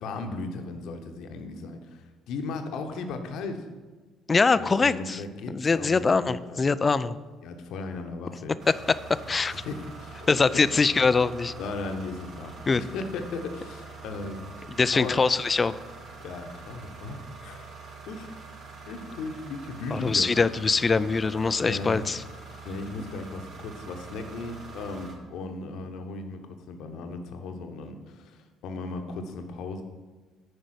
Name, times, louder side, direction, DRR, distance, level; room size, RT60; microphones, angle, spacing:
voice 1, 0.0-3.7 4.5-7.0 7.4-8.6 9.5-10.3 10.5-10.6 11.6-14.4 14.9-15.2 16.2-17.8 18.1-18.3 18.9-20.3 21.6-22.1 22.6-29.8, left 3 dB, 60° left, 6 dB, 1.0 m, -36 dB
voice 2, 4.3-5.2 5.5-7.2 8.7-8.8 9.1-9.5 10.3-11.5 12.7-12.8 14.8-15.8 19.9-22.2, left 4 dB, 30° left, 16 dB, 0.4 m, -23 dB
sound 1, 8.6-25.1, right 4 dB, 50° right, 1.6 m, -44 dB
9.8 x 5.2 x 6.4 m, 1.4 s
figure-of-eight pair, 50°, 0 cm